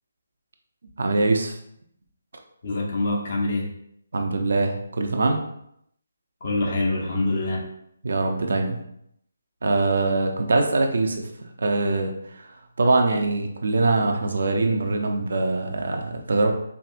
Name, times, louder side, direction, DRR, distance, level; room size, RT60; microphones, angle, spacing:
voice 1, 1.0-1.6 4.1-5.4 8.0-8.8 9.6-11.3 11.6-12.1 12.8-16.5, right 3 dB, 60° right, 3 dB, 0.5 m, -23 dB
voice 2, 2.6-3.7 6.4-7.7, left 2 dB, 50° left, -1 dB, 0.9 m, -25 dB
4.6 x 2.6 x 2.5 m, 0.73 s
figure-of-eight pair, 145°, 0 cm